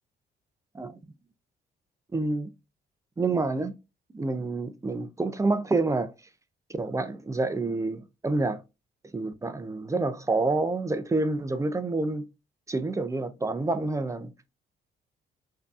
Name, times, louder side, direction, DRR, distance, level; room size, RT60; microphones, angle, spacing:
voice 1, 2.1-2.5 3.2-3.7 4.1-6.1 6.7-8.6 9.1-12.3 12.7-14.3, right 3 dB, 15° right, 0.4 m, -28 dB
5.1 x 2.7 x 2.4 m
cardioid pair, 90°, 20 cm